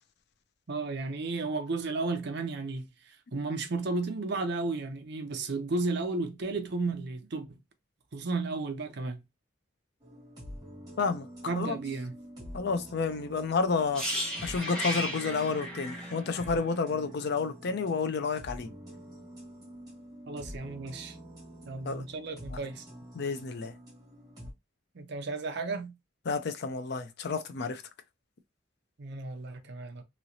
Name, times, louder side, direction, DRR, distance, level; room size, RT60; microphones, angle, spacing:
voice 1, 0.7-7.6 8.1-9.2 11.5-12.1 20.3-21.1 21.7-22.8 24.9-25.9 29.0-30.0, right 3 dB, 60° right, 0.6 m, -33 dB
sound 1, 10.0-24.5, equal, 20° right, 1.6 m, -47 dB
voice 2, 11.0-11.3 11.6-11.8 12.5-18.7 21.8-22.0 22.5-22.6 23.1-23.7 26.3-27.8, left 4 dB, 55° left, 0.5 m, -30 dB
sound 2, 13.9-17.8 18.1-18.3, equal, 5° left, 1.1 m, -36 dB
3.1 x 2.9 x 2.6 m
head